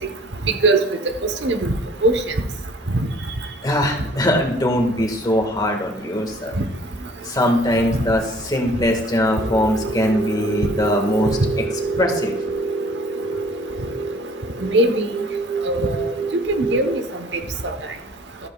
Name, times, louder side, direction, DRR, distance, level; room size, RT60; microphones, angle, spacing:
voice 1, 1.4-1.7 2.0-2.2 7.9-8.0 14.6-15.1 15.6-17.0 17.3-17.4, right 2 dB, 80° right, 7 dB, 1.1 m, -19 dB
voice 2, 3.6-6.5 7.2-11.4 12.0-12.3, left 1 dB, 25° left, 2 dB, 1.7 m, -21 dB
sound 1, 9.3-17.1, right 4 dB, 45° right, 1.0 m, -27 dB
14.0 x 13.5 x 2.4 m, 0.81 s
head